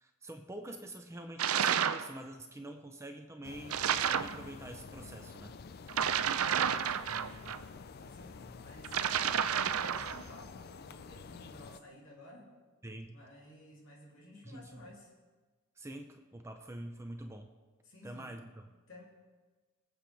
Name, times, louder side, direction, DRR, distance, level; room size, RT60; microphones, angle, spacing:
voice 1, 0.0-5.6 12.8-13.2 14.4-14.9 15.8-17.5 18.0-18.7, right 1 dB, 10° right, 5 dB, 0.6 m, -46 dB
sound 1, 1.4-2.1 3.7-4.4 5.9-7.6 8.8-10.2, right 8 dB, 80° right, 0.5 m, -30 dB
sound 2, 3.4-11.8, left 5 dB, 45° left, 0.4 m, -49 dB
voice 2, 6.0-7.5 8.0-9.5 9.8-12.5 13.1-15.1 17.8-18.3 18.9-19.0, left 1 dB, 65° left, -3 dB, 3.1 m, -54 dB
23.0 x 7.8 x 3.5 m, 1.3 s
head